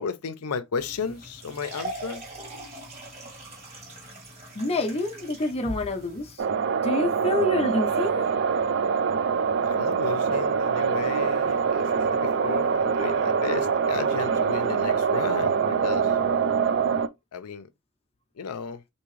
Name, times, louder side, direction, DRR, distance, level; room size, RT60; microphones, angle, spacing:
voice 1, 0.0-2.3 9.6-16.2 17.3-17.7 18.4-18.8, left 5 dB, 90° left, 0.5 m, -34 dB
sound 1, 0.8-6.4, right 1 dB, 30° right, 1.6 m, -41 dB
voice 2, 4.5-6.4 6.8-8.3, left 1 dB, 25° left, 0.6 m, -27 dB
sound 2, 6.4-17.1, right 6 dB, 55° right, 0.3 m, -24 dB
3.6 x 2.8 x 3.1 m
head